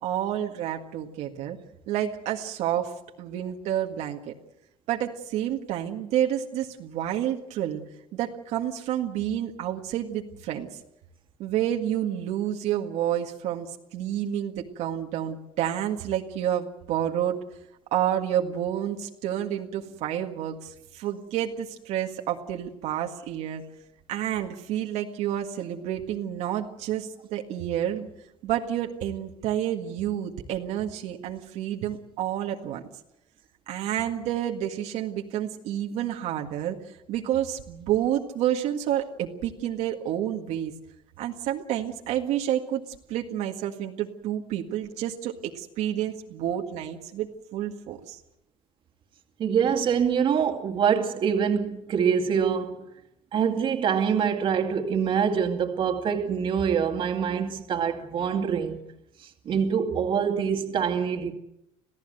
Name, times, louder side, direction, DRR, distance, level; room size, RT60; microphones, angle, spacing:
voice 1, 0.0-1.6 1.9-2.9 3.2-4.3 4.9-7.8 8.1-10.8 11.4-13.7 13.9-17.4 17.9-23.6 24.1-28.1 28.4-32.8 33.7-36.8 37.1-40.7 41.2-42.8 43.1-48.2, right 11 dB, 75° right, 1.9 m, -29 dB
voice 2, 49.4-52.9 53.3-58.8 59.2-61.3, right 7 dB, 45° right, 2.3 m, -25 dB
26.5 x 16.5 x 7.9 m
cardioid pair, 150°, 12 cm